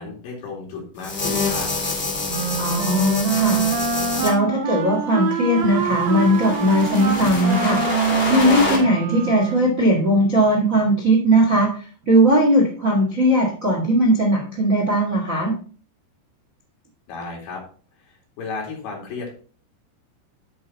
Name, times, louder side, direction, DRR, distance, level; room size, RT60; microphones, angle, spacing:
voice 1, 0.0-1.7 17.1-17.6 18.0-19.3, left 4 dB, 70° left, 0 dB, 4.2 m, -33 dB
sound 1, 1.0-4.3 5.4-8.8, left 3 dB, 35° left, 0.9 m, -27 dB
Wind instrument woodwind instrument, 2.3-9.8, right 6 dB, 70° right, 2.4 m, -25 dB
voice 2, 2.6-3.6 4.2-15.5, right 1 dB, 55° right, 0 dB, 0.9 m, -19 dB
10.5 x 4.6 x 4.1 m, 0.41 s
omnidirectional pair, 5.0 m